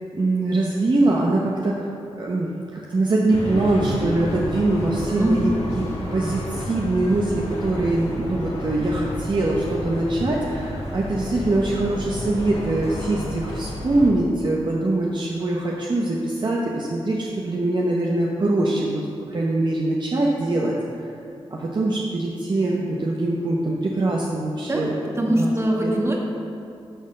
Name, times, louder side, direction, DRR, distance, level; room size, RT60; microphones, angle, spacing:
voice 1, 0.1-1.9 2.2-21.1 21.5-24.9 25.2-25.5 25.8-25.9, right 2 dB, 45° right, -3 dB, 0.8 m, -23 dB
sound 1, 3.3-14.1, left 1 dB, 80° left, 1.4 m, -31 dB
voice 2, 25.2-26.2, right 1 dB, 25° right, -1 dB, 1.5 m, -22 dB
9.4 x 4.1 x 6.5 m, 2.5 s
cardioid pair, 75°, 11 cm